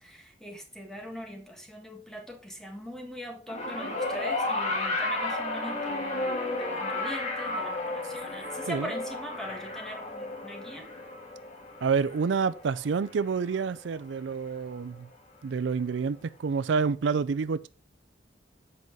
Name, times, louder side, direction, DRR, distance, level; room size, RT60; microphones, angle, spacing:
voice 1, 0.0-10.9, equal, 5° left, 1.6 m, -41 dB
sound 1, 3.5-13.9 15.0-15.1, left 2 dB, 40° left, 1.9 m, -33 dB
voice 2, 11.8-15.1 15.4-17.7, right 5 dB, 80° right, 0.4 m, -28 dB
7.8 x 5.4 x 4.5 m
head